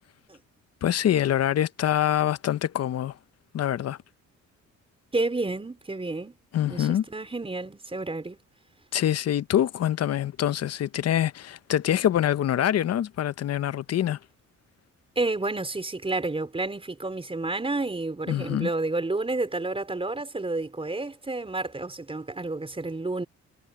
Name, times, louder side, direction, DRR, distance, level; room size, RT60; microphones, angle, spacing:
voice 1, 0.8-3.2 3.5-4.0 6.5-7.0 8.9-14.2 18.3-18.7, left 11 dB, 55° left, 0.9 m, -25 dB
voice 2, 5.1-6.4 6.6-8.4 15.2-23.3, right 2 dB, 20° right, 4.7 m, -30 dB
cardioid pair, 90°, 30 cm